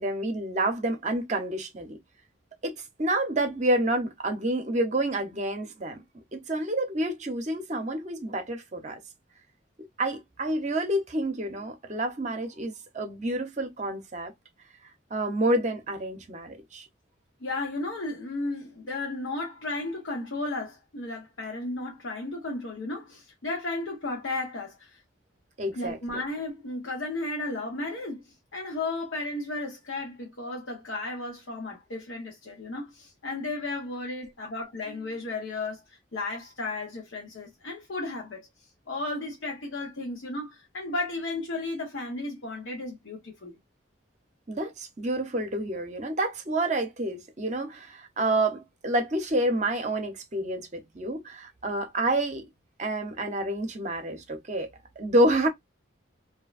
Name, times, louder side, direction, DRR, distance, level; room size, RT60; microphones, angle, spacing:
voice 1, 0.0-2.0 2.6-6.0 6.3-9.0 10.0-14.3 15.1-16.9 25.6-26.2 44.5-52.4 52.8-54.7 55.0-55.5, right 1 dB, 35° right, 0.7 m, -28 dB
voice 2, 17.4-24.9 25.7-28.2 28.5-35.8 36.1-38.5 38.9-43.6, left 2 dB, 75° left, 0.9 m, -34 dB
2.7 x 2.2 x 2.3 m
head